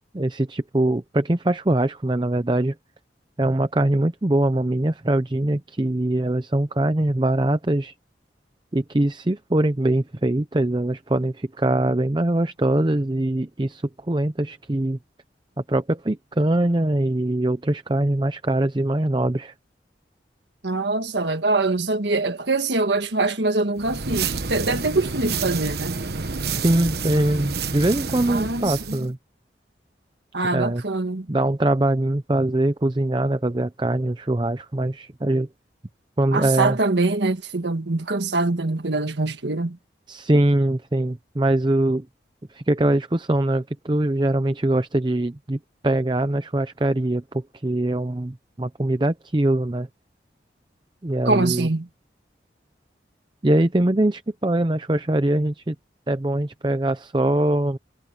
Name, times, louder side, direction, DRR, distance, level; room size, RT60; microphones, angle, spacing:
voice 1, 0.1-2.7 3.4-7.9 8.7-15.0 15.7-19.5 26.6-29.2 30.5-30.8 31.3-35.5 36.2-36.8 40.1-42.1 42.5-49.9 51.0-51.7 53.4-55.8 56.1-57.8, right 1 dB, 25° right, 0.6 m, -22 dB
voice 2, 20.6-25.9 28.3-29.0 30.3-31.3 36.3-39.8 51.2-51.8, right 3 dB, 85° right, 1.6 m, -24 dB
sound 1, 23.8-29.1, right 4 dB, 65° right, 1.1 m, -29 dB
head